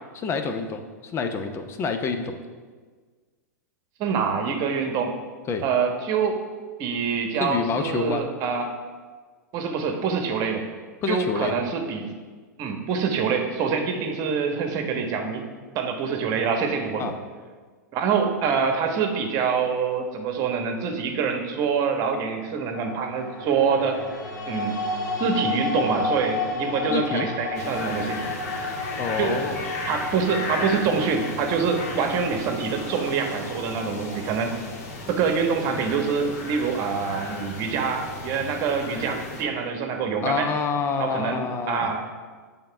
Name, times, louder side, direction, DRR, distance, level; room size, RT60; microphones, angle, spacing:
voice 1, 0.1-2.4 5.5-5.6 7.4-8.2 11.0-11.5 17.0-17.1 26.9-27.3 29.0-29.6 40.2-41.9, left 5 dB, 30° left, 7 dB, 0.8 m, -27 dB
voice 2, 4.0-5.2 5.6-6.4 6.8-8.7 9.5-10.7 11.1-12.1 12.6-15.4 15.7-17.1 17.9-24.0 24.5-24.8 25.2-28.2 29.2-29.4 29.9-34.5 35.1-40.5 41.0-42.1, right 6 dB, 40° right, 4 dB, 1.2 m, -25 dB
sound 1, 22.8-35.0, left 3 dB, 85° left, 1.9 m, -32 dB
sound 2, 27.5-39.4, left 3 dB, 55° left, 1.6 m, -35 dB
8.8 x 3.7 x 5.8 m, 1.5 s
hypercardioid pair, 100°, 9 cm